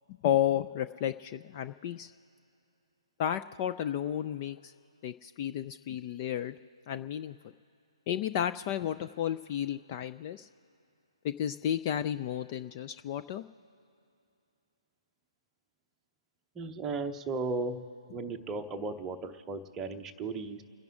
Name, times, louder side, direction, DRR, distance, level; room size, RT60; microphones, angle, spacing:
voice 1, 0.1-2.1 3.2-4.7 5.0-6.6 6.9-7.4 8.1-10.5 11.2-13.4, left 10 dB, 25° left, 9 dB, 0.4 m, -32 dB
voice 2, 16.5-17.8 18.1-20.6, right 3 dB, 10° right, 6 dB, 0.8 m, -35 dB
30.0 x 10.5 x 3.7 m, 2.7 s
figure-of-eight pair, 135°, 3 cm